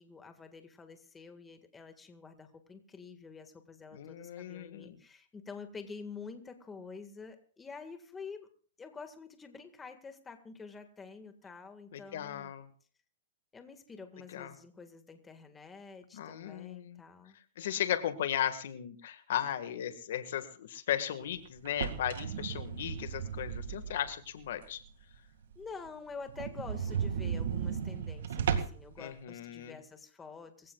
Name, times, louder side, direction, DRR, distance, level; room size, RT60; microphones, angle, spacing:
voice 1, 0.0-8.5 8.8-12.5 13.5-17.4 25.5-30.7, left 5 dB, 10° left, 7 dB, 1.8 m, -48 dB
voice 2, 3.9-5.0 11.9-12.7 14.3-14.5 16.1-17.0 17.6-24.8 29.0-29.7, left 10 dB, 70° left, 10 dB, 1.7 m, -36 dB
sound 1, 21.6-24.2 24.6-24.7 25.1-25.2 25.5-25.6 25.9-26.0 26.3-28.9, right 7 dB, 75° right, 2.1 m, -35 dB
24.0 x 16.0 x 2.4 m, 0.43 s
hypercardioid pair, 150°, 0 cm